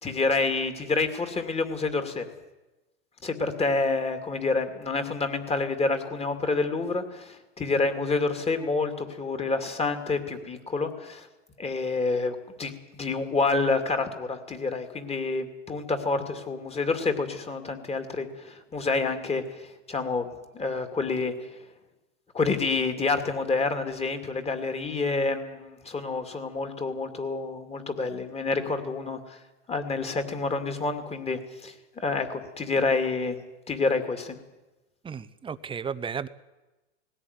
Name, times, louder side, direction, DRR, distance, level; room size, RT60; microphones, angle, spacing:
voice 1, 0.0-2.3 3.2-11.3 11.6-20.3 20.5-21.5 22.3-29.4 29.7-33.4 33.7-34.4, left 3 dB, 15° left, 7 dB, 2.5 m, -28 dB
voice 2, 35.0-36.3, right 6 dB, 15° right, 14 dB, 0.8 m, -34 dB
19.0 x 17.0 x 9.6 m, 1.1 s
hypercardioid pair, 115°, 38 cm